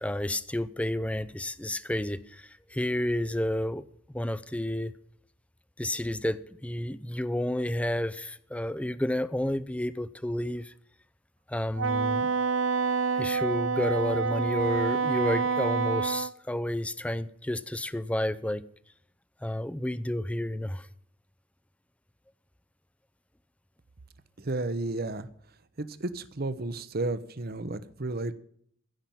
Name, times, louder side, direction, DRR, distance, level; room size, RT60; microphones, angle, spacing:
voice 1, 0.0-5.0 5.8-10.7 11.5-12.3 13.2-18.7 19.4-20.9, left 1 dB, 5° left, 0.5 m, -31 dB
Wind instrument woodwind instrument, 11.8-16.3, right 5 dB, 70° right, 0.5 m, -27 dB
voice 2, 24.4-25.3 25.8-28.3, right 2 dB, 50° right, 0.9 m, -32 dB
16.0 x 5.9 x 9.1 m
head